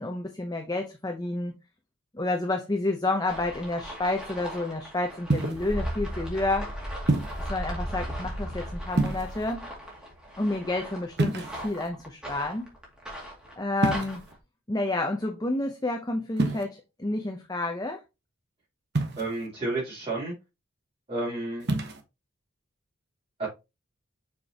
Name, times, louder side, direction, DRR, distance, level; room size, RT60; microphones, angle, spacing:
voice 1, 0.0-1.5 2.1-6.7 7.5-9.6 10.4-12.7 13.6-14.2 14.7-18.0, left 2 dB, 20° left, 0.7 m, -30 dB
sound 1, 3.3-14.4, equal, 5° right, 2.3 m, -37 dB
sound 2, 5.3-5.7 7.1-7.5 8.9-9.5 11.2-11.9 13.8-14.3 16.4-16.6 18.9-19.5 21.6-22.0, right 2 dB, 50° right, 1.1 m, -27 dB
voice 2, 19.2-20.3 21.1-21.6 23.4-23.5, right 2 dB, 25° right, 3.3 m, -31 dB
6.7 x 5.0 x 2.9 m
head